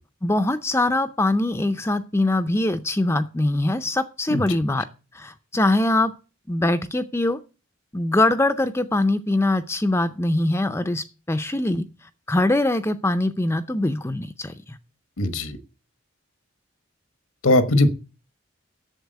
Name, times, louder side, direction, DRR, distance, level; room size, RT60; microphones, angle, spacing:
voice 1, 0.2-4.8 5.1-6.1 6.5-7.4 7.9-11.8 12.3-14.8, left 2 dB, 10° left, 0.5 m, -22 dB
voice 2, 4.3-4.6 15.2-15.6 17.4-17.9, left 2 dB, 85° left, 1.3 m, -20 dB
8.2 x 7.1 x 8.0 m
head